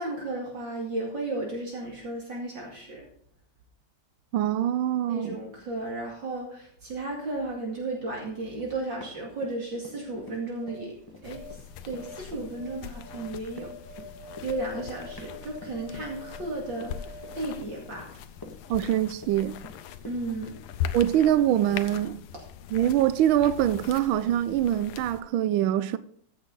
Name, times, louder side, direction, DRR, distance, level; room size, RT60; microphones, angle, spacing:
voice 1, 0.0-3.1 5.1-10.9 11.2-11.6 11.8-13.7 14.4-18.1 20.0-20.6, right 2 dB, 55° right, 2.9 m, -34 dB
voice 2, 4.3-5.4 18.7-19.6 20.9-22.2 22.7-26.0, right 11 dB, 80° right, 1.4 m, -24 dB
Run, 8.5-10.0 10.3-20.2, left 1 dB, 10° left, 1.5 m, -47 dB
sound 1, 10.3-18.5 18.8-18.9, equal, 40° right, 2.3 m, -47 dB
sound 2, 11.2-25.2, left 9 dB, 85° left, 1.7 m, -41 dB
15.0 x 7.1 x 3.9 m
omnidirectional pair, 2.4 m